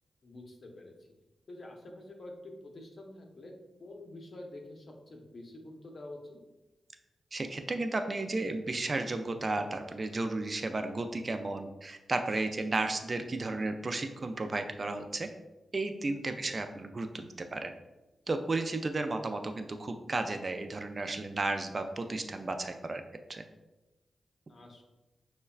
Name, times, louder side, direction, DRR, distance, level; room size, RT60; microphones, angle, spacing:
voice 1, 0.2-1.0 1.5-3.5 3.8-6.4 16.2-16.5 24.5-24.8, left 1 dB, 55° left, 1 dB, 0.7 m, -47 dB
voice 2, 7.3-15.3 15.7-17.7 18.3-23.0 23.3-23.4, right 2 dB, 40° right, 6 dB, 0.3 m, -33 dB
6.3 x 2.2 x 2.3 m, 1.1 s
cardioid pair, 75°, 0 cm